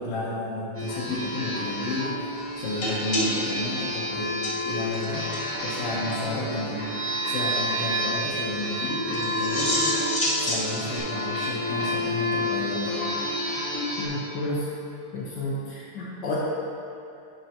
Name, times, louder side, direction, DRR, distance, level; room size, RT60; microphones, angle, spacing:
voice 1, 0.0-2.2 2.6-4.4 4.6-5.3 5.6-6.9 7.3-10.0 10.4-13.1, left 2 dB, 65° left, -6 dB, 1.7 m, -32 dB
sound 1, 0.7-14.1, equal, 10° left, 1.2 m, -30 dB
sound 2, 2.8-5.1 5.3-5.5 5.8-5.9 6.1-6.2 9.1-11.0, equal, 35° left, 0.8 m, -29 dB
voice 2, 14.0-14.6 15.1-16.3, left 1 dB, 80° left, -7 dB, 0.9 m, -31 dB
11.0 x 5.9 x 2.8 m, 2.7 s
omnidirectional pair, 3.3 m